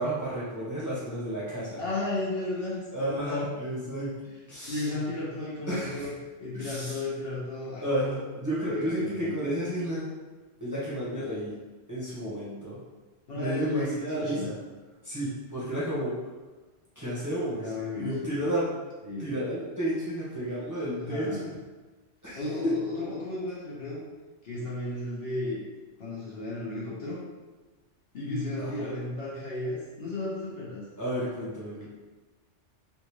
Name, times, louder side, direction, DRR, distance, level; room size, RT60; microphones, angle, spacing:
voice 1, 0.0-1.8 2.9-4.1 4.5-4.9 5.7-6.1 6.5-7.0 7.8-10.0 10.6-11.5 11.9-12.8 13.3-14.5 15.0-16.1 17.0-18.7 19.2-21.5 22.2-22.7 28.6-29.0 31.0-31.8, right 1 dB, 15° right, -9 dB, 0.9 m, -32 dB
voice 2, 1.8-3.4 4.6-6.1 6.4-7.8 8.7-9.5 13.3-14.5 17.6-18.4 19.0-19.3 21.0-21.5 22.3-24.0 24.4-25.6 26.0-27.2 28.1-30.9, left 2 dB, 55° left, -6 dB, 1.0 m, -34 dB
3.5 x 2.4 x 3.0 m, 1.2 s
omnidirectional pair, 1.2 m